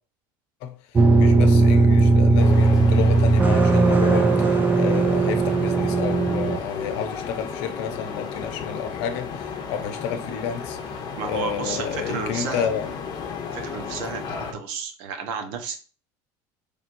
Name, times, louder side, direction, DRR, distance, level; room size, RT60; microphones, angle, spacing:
voice 1, 0.6-12.9, left 8 dB, 75° left, 0.7 m, -31 dB
sound 1, 1.0-6.6, right 3 dB, 15° right, 0.4 m, -18 dB
sound 2, 2.4-14.5, left 6 dB, 45° left, 0.8 m, -33 dB
voice 2, 11.2-12.7 13.5-15.8, right 6 dB, 75° right, 0.9 m, -32 dB
4.4 x 3.4 x 2.5 m
supercardioid pair, 120°, 10 cm